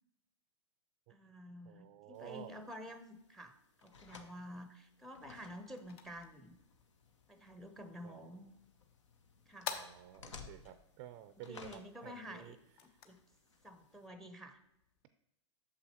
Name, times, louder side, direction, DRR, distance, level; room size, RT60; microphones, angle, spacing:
voice 1, 1.1-3.5 3.8-6.6 7.3-8.5 9.5-9.7 11.4-12.6 12.8-13.2 13.6-14.6, equal, 5° left, 9 dB, 0.6 m, -50 dB
voice 2, 1.7-2.5 8.0-8.3 9.7-12.6, right 13 dB, 45° right, 11 dB, 0.4 m, -52 dB
sound 1, 2.1-14.1, left 4 dB, 80° left, 1.0 m, -59 dB
sound 2, 5.3-15.0, left 6 dB, 60° left, 1.0 m, -53 dB
8.8 x 6.8 x 2.9 m, 0.84 s
hypercardioid pair, 115°, 15 cm